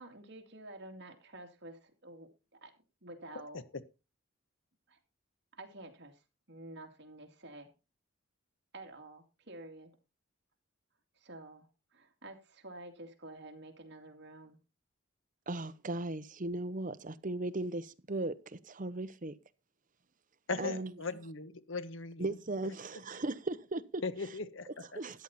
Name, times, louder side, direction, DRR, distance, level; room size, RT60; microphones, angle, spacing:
voice 1, 0.0-2.3 2.6-2.7 3.0-3.6 4.9-5.0 5.5-6.2 6.5-7.7 8.7-9.9 11.2-14.6 20.5-21.2, right 2 dB, 55° right, 2.7 m, -50 dB
voice 2, 15.5-19.3 20.6-20.9 22.2-24.0 24.7-25.2, right 2 dB, 40° right, 0.9 m, -37 dB
voice 3, 20.5-22.4 24.0-25.0, left 3 dB, 70° left, 1.2 m, -39 dB
13.5 x 9.6 x 4.2 m
head